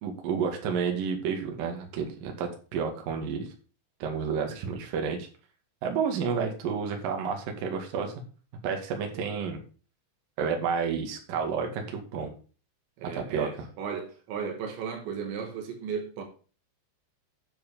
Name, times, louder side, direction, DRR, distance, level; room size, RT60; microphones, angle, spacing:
voice 1, 0.0-3.5 4.0-5.3 5.8-8.1 8.6-9.6 10.4-12.3 13.1-13.5, right 6 dB, 55° right, 3.2 m, -30 dB
voice 2, 4.4-4.8 9.2-9.4 13.0-16.2, right 6 dB, 75° right, 3.8 m, -36 dB
10.5 x 6.4 x 5.3 m
omnidirectional pair, 5.4 m